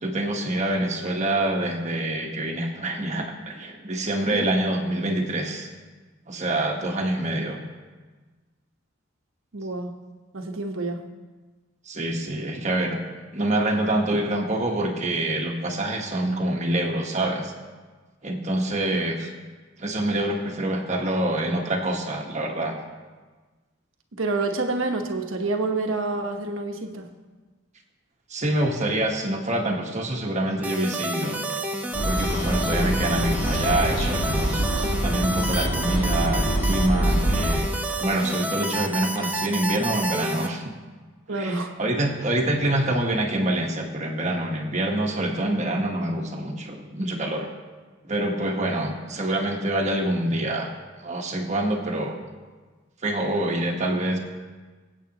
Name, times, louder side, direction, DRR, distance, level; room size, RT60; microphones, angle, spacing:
voice 1, 0.0-5.7 6.3-7.6 11.9-13.0 13.3-17.5 18.2-19.3 19.8-22.8 28.3-31.4 32.0-34.6 35.0-40.7 41.3-47.5 48.0-50.7 51.0-52.2 53.0-54.2, right 1 dB, 35° right, 1 dB, 1.3 m, -26 dB
voice 2, 9.5-9.9 10.3-11.0 18.9-19.0 24.1-27.1 41.3-41.7, right 3 dB, 80° right, 4 dB, 1.2 m, -28 dB
sound 1, 30.6-40.5, right 1 dB, 10° right, 0.7 m, -29 dB
sound 2, 31.9-37.6, right 1 dB, 70° left, 4.0 m, -25 dB
24.0 x 8.4 x 3.0 m, 1.3 s
head